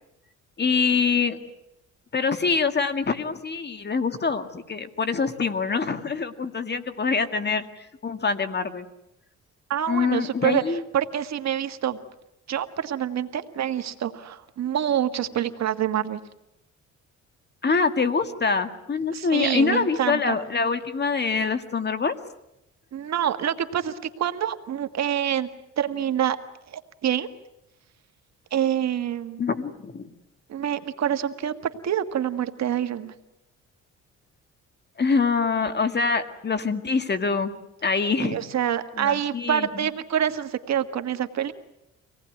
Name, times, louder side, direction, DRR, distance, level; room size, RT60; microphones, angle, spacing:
voice 1, 0.6-1.4 2.1-8.9 9.9-10.8 17.6-22.1 29.4-30.1 35.0-37.5 37.8-38.4 39.0-39.9, left 5 dB, 35° left, 9 dB, 2.0 m, -25 dB
voice 2, 9.7-10.6 10.9-12.0 12.5-16.2 19.1-20.4 22.9-25.5 25.8-26.4 26.7-27.3 28.5-29.4 30.5-31.5 31.8-33.1 38.2-41.5, right 10 dB, 60° right, 9 dB, 1.6 m, -26 dB
25.5 x 18.5 x 9.4 m, 0.85 s
cardioid pair, 90°, 30 cm